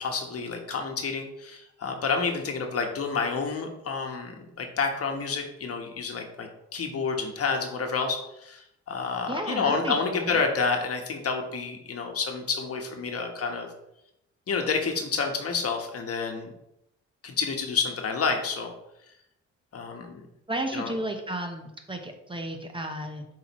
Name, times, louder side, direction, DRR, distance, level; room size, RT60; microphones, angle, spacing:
voice 1, 0.0-13.7 14.5-16.5 17.2-18.7 19.7-20.1 20.7-20.9, left 5 dB, 50° left, 3 dB, 1.2 m, -29 dB
voice 2, 9.3-10.4 20.5-23.3, right 1 dB, 15° right, 4 dB, 0.9 m, -33 dB
7.9 x 4.7 x 3.1 m, 0.83 s
cardioid pair, 90°, 30 cm